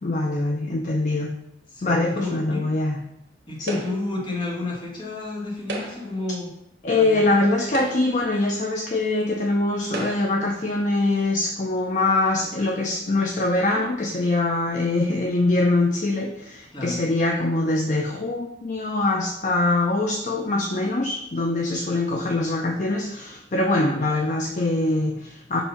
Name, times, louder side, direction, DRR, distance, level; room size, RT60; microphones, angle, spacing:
voice 1, 0.0-1.3 1.8-3.0 3.6-3.8 6.8-25.6, left 2 dB, 40° left, 1 dB, 0.5 m, -23 dB
voice 2, 1.7-2.7 3.5-6.5 6.9-7.4 16.7-17.0, left 2 dB, 25° left, -3 dB, 1.5 m, -31 dB
sound 1, 3.7-4.2 5.6-6.2 7.1-7.2 7.6-8.3 9.2-9.3 9.9-10.5, right 2 dB, 75° right, 1.4 m, -34 dB
7.0 x 2.8 x 5.6 m, 0.78 s
head